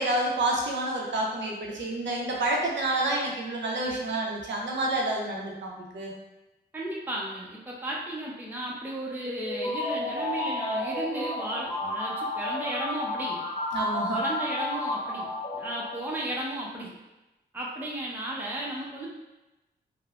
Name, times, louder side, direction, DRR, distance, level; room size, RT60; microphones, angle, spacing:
voice 1, 0.0-6.1 13.7-14.2, right 1 dB, 85° right, -2 dB, 0.6 m, -29 dB
voice 2, 6.7-13.4 14.1-15.3 15.5-16.9 17.5-19.2, right 1 dB, 10° right, -4 dB, 0.5 m, -34 dB
sound 1, 9.4-16.2, left 1 dB, 30° left, 1.0 m, -31 dB
3.1 x 2.0 x 2.4 m, 1.0 s
cardioid pair, 70°, 19 cm